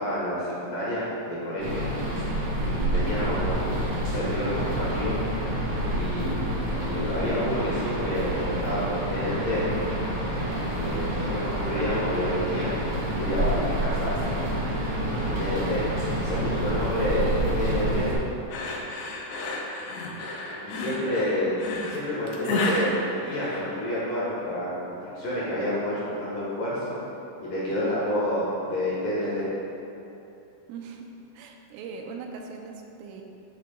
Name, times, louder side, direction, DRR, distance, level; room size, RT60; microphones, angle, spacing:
voice 1, 0.0-1.9 2.6-3.8 4.1-5.2 5.9-6.3 6.7-9.7 10.8-14.6 15.1-15.8 16.2-18.1 20.6-21.6 21.8-26.9 27.4-29.5, left 1 dB, 60° left, -9 dB, 2.4 m, -29 dB
sound 1, 1.6-18.1, right 1 dB, 60° right, 2.1 m, -28 dB
sound 2, 18.5-24.0, left 2 dB, 85° left, 2.2 m, -31 dB
voice 2, 30.7-33.2, right 4 dB, 90° right, 2 dB, 3.2 m, -40 dB
9.4 x 8.6 x 2.3 m, 2.9 s
omnidirectional pair, 5.6 m